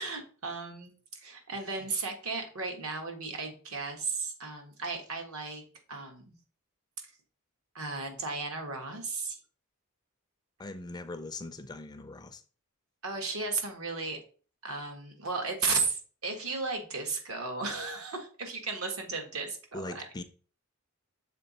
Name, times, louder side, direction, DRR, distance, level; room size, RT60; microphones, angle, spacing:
voice 1, 0.0-5.6 5.9-6.3 7.7-9.4 13.0-14.2 14.6-20.2, right 4 dB, 75° right, 1.4 m, -35 dB
voice 2, 10.6-12.4 19.7-20.2, left 2 dB, 20° left, 0.4 m, -41 dB
6.6 x 3.7 x 4.1 m
head